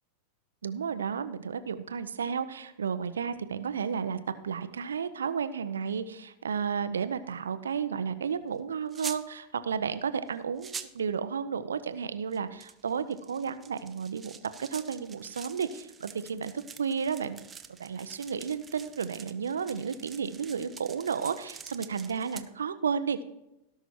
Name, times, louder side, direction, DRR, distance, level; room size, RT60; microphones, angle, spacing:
voice 1, 0.6-14.3 14.6-16.5 16.8-17.4 17.8-23.2, right 6 dB, 70° right, 11 dB, 0.7 m, -32 dB
sound 1, 8.9-9.2 10.3-10.4 10.6-11.0 12.3-22.4, right 6 dB, 20° right, 0.8 m, -46 dB
17.5 x 6.1 x 4.4 m, 0.87 s
figure-of-eight pair, 90°, 0 cm